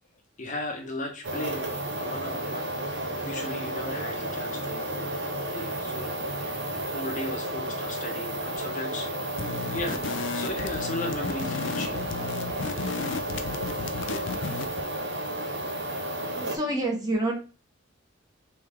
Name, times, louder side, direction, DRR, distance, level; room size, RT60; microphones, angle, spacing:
voice 1, 0.4-5.2 5.5-6.6 6.9-9.1 9.6-12.1, left 2 dB, 35° left, 3 dB, 0.8 m, -36 dB
sound 1, 1.2-16.6, right 1 dB, 55° right, 0.7 m, -32 dB
sound 2, 9.4-14.8, left 5 dB, 60° left, 0.4 m, -34 dB
voice 2, 16.3-17.3, right 1 dB, 20° right, 0 dB, 1.0 m, -28 dB
3.5 x 3.4 x 3.2 m, 0.34 s
head